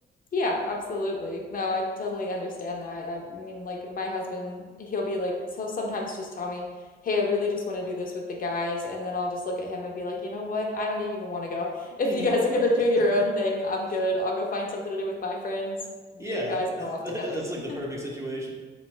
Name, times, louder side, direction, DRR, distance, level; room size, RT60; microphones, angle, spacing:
voice 1, 0.3-6.7 7.0-15.8 16.1-17.0 17.3-17.4, left 2 dB, 45° left, 0 dB, 0.7 m, -28 dB
voice 2, 16.2-18.5, equal, 15° right, -2 dB, 0.8 m, -33 dB
3.1 x 2.9 x 4.3 m, 1.4 s
cardioid pair, 90°, 20 cm